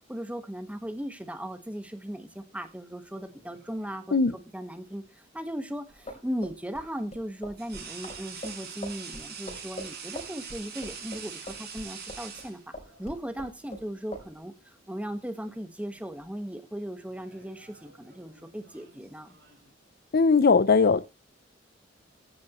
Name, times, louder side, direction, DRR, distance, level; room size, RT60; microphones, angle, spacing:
voice 1, 0.1-5.0 5.3-12.6 13.0-14.5 14.9-19.3, equal, 5° right, 1.4 m, -37 dB
sound 1, 3.3-4.1 5.9-6.0 7.6-13.0 14.2-14.4 14.8-15.6 15.9-16.2 17.1-19.7, right 6 dB, 55° right, 5.1 m, -44 dB
sound 2, 5.9-12.4 12.7-13.9 14.1-14.3, equal, 35° left, 3.5 m, -42 dB
voice 2, 20.1-21.0, left 4 dB, 50° left, 0.6 m, -20 dB
15.0 x 9.6 x 3.0 m
head